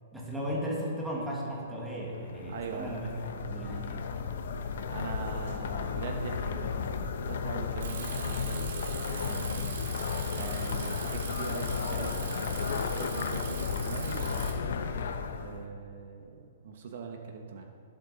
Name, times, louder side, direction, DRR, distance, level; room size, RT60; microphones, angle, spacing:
voice 1, 0.1-3.1 3.5-4.1, equal, ahead, -5 dB, 1.7 m, -35 dB
sound 1, 2.2-15.7, left 5 dB, 60° left, 0.9 m, -34 dB
voice 2, 2.5-2.9 4.9-8.7 9.0-9.7 10.3-14.6 15.4-17.6, right 5 dB, 50° right, 3 dB, 1.1 m, -41 dB
Bicycle, 7.8-14.5, right 6 dB, 65° right, 2.2 m, -41 dB
19.0 x 7.7 x 4.1 m, 2.5 s
hypercardioid pair, 170°, 0 cm